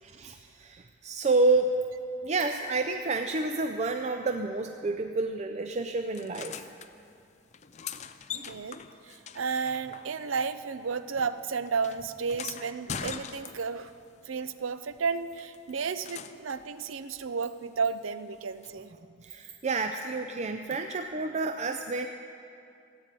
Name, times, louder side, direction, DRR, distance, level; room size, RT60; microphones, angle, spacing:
voice 1, 0.0-1.8 2.2-6.6 8.3-8.5 19.2-22.1, right 3 dB, 35° right, 6 dB, 0.4 m, -29 dB
sound 1, 6.1-6.9 7.5-10.5 10.7-13.9 15.4-16.7 18.6-18.7, left 7 dB, 35° left, 0.4 m, -42 dB
voice 2, 8.5-8.8 9.0-13.9 14.3-18.9, right 5 dB, 80° right, 13 dB, 0.6 m, -32 dB
15.0 x 8.9 x 8.3 m, 2.6 s
head